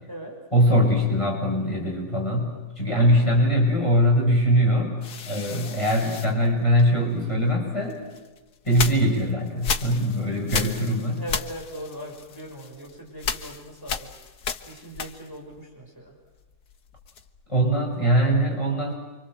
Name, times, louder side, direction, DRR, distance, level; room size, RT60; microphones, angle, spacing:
voice 1, 0.5-5.0 5.3-8.0 8.6-11.2 17.5-18.9, equal, 20° left, -1 dB, 6.6 m, -22 dB
sound 1, 5.0-7.2 7.9-15.5 15.8-17.5, left 6 dB, 85° left, 1.9 m, -34 dB
voice 2, 5.5-5.8 11.1-14.1 14.6-16.1, right 1 dB, 10° right, -2 dB, 6.1 m, -40 dB
29.5 x 25.0 x 7.9 m, 1.2 s
omnidirectional pair, 1.7 m